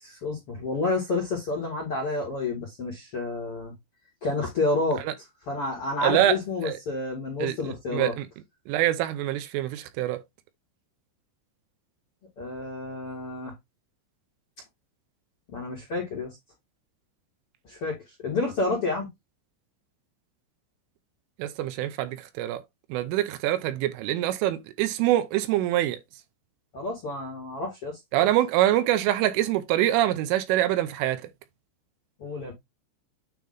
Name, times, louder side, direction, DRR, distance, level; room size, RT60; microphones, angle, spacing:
voice 1, 0.0-3.7 4.2-5.0 5.5-8.1 12.4-13.5 15.5-16.3 17.7-17.9 18.2-19.1 26.7-27.9 28.2-28.3 32.2-32.5, left 3 dB, 45° left, 1.9 m, -29 dB
voice 2, 6.0-6.4 6.6-6.8 7.4-7.6 7.9-8.3 8.7-10.2 21.4-22.6 22.9-26.0 28.1-31.2, right 13 dB, 80° right, 3.3 m, -25 dB
9.3 x 3.1 x 4.0 m
omnidirectional pair, 5.8 m